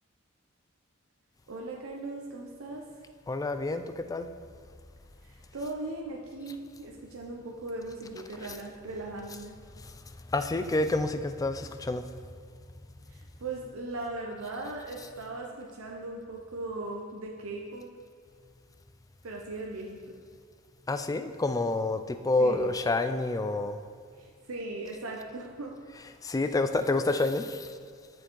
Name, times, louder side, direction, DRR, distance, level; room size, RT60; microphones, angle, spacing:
voice 1, 1.5-2.8 5.2-9.6 13.1-17.9 19.2-20.2 22.4-22.7 24.2-25.7, right 2 dB, 85° right, -1 dB, 0.7 m, -38 dB
voice 2, 3.3-4.3 9.8-9.9 10.3-12.0 20.9-23.8 26.2-27.7, left 2 dB, 15° left, 9 dB, 0.3 m, -28 dB
7.0 x 6.4 x 4.6 m, 2.1 s
head